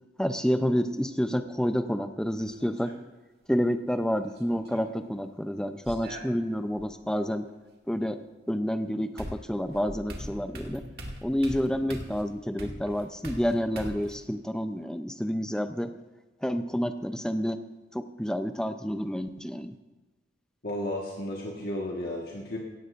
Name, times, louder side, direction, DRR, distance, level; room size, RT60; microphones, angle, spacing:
voice 1, 0.2-2.9 3.5-7.5 7.9-8.2 8.5-10.8 11.2-15.9 16.4-17.6 17.9-19.7, equal, 5° left, 8 dB, 0.6 m, -29 dB
sound 1, 2.4-3.0 4.3-4.9 5.9-6.9 8.6-8.7 9.2-14.2, equal, 55° right, 2.1 m, -41 dB
voice 2, 20.6-22.6, left 1 dB, 50° left, -2 dB, 1.6 m, -33 dB
17.0 x 15.0 x 2.6 m, 1.2 s
head